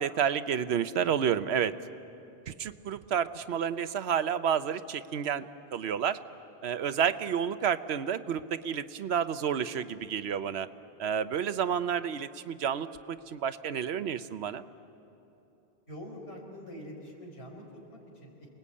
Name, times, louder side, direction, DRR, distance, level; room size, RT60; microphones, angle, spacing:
voice 1, 0.0-1.7 2.5-5.4 5.7-6.2 6.6-10.7 11.0-14.6, right 8 dB, 85° right, 12 dB, 1.0 m, -30 dB
voice 2, 15.9-18.5, equal, 85° left, 0 dB, 4.8 m, -45 dB
28.5 x 20.0 x 8.5 m, 2.9 s
omnidirectional pair, 1.1 m